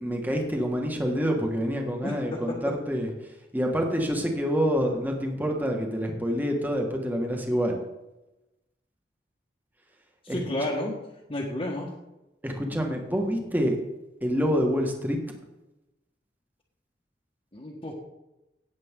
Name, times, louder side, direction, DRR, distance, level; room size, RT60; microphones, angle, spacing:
voice 1, 0.0-3.1 3.5-7.8 10.3-10.4 12.4-13.8 14.2-15.2, equal, 10° right, 2 dB, 1.8 m, -27 dB
voice 2, 2.0-2.4 10.2-11.0 11.3-11.9 17.5-18.0, left 1 dB, 30° left, -4 dB, 1.5 m, -31 dB
17.0 x 7.6 x 3.8 m, 0.97 s
head